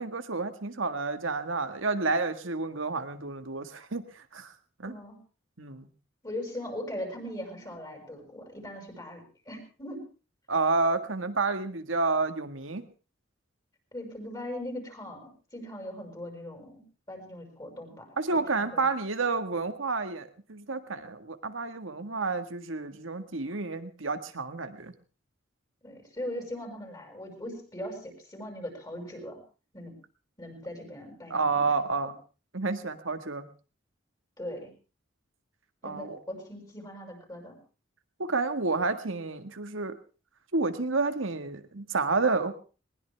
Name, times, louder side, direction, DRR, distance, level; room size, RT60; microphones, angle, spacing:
voice 1, 0.0-4.0 4.3-4.5 4.8-5.0 5.6-5.9 10.5-12.8 18.2-24.9 31.3-32.1 32.5-33.5 35.8-36.2 38.2-40.0 40.5-42.5, right 3 dB, 90° right, 9 dB, 1.7 m, -30 dB
voice 2, 4.9-5.2 6.2-10.0 13.9-16.8 17.1-18.8 25.8-29.4 29.7-29.9 30.4-31.6 34.4-34.7 35.8-37.6, left 1 dB, 20° left, 3 dB, 6.1 m, -40 dB
20.5 x 20.0 x 3.5 m, 0.36 s
head